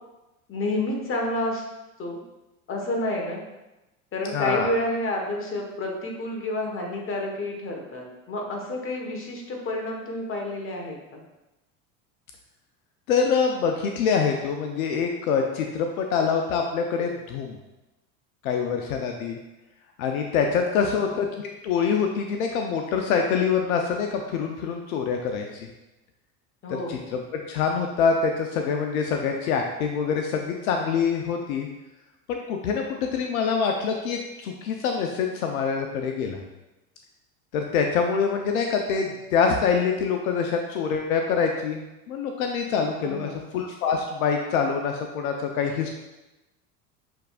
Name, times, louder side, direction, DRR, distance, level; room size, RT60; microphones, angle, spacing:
voice 1, 0.5-1.6 2.0-2.2 2.7-3.4 4.1-11.2 20.8-20.9 26.6-27.2 43.0-43.4, left 1 dB, 30° left, 1 dB, 1.2 m, -29 dB
voice 2, 4.3-4.7 13.1-17.6 18.4-19.4 20.0-25.7 26.7-31.7 32.3-36.4 37.5-45.9, left 6 dB, 75° left, 3 dB, 0.7 m, -25 dB
6.5 x 3.4 x 2.3 m, 1.0 s
hypercardioid pair, 85°, 43 cm